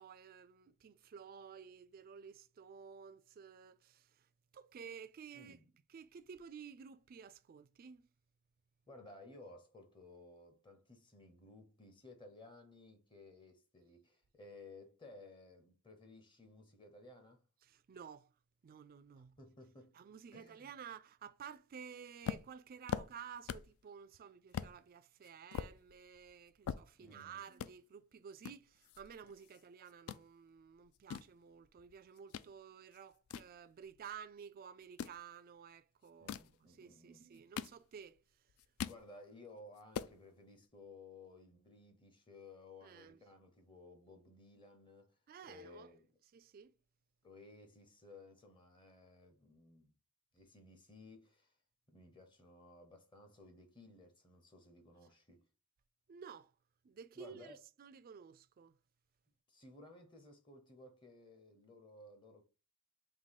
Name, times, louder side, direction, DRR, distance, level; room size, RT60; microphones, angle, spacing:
voice 1, 0.0-5.6 5.9-8.1 17.6-18.3 18.6-19.4 19.9-38.2 42.8-43.2 45.3-45.9 46.3-46.7 56.1-56.5 56.8-58.8, right 7 dB, 40° right, 0.3 m, -53 dB
voice 2, 5.3-5.7 8.9-17.4 19.4-20.0 20.3-20.7 27.0-27.4 36.2-37.3 38.8-45.2 45.5-46.1 47.2-49.9 50.3-51.6 51.9-55.5 57.1-57.6 59.5-62.4, left 2 dB, 20° left, 0.7 m, -57 dB
sound 1, 22.2-23.8 24.1-24.2 24.5-24.7 25.2-27.2 27.5-27.7 28.4-29.6 29.9-30.2 30.8-32.5 32.9-34.2 34.8-35.2 36.1-36.6 37.2-38.2 38.5-39.0 39.4-39.5 39.8-40.2, left 8 dB, 65° left, 0.3 m, -43 dB
3.6 x 2.7 x 4.0 m
head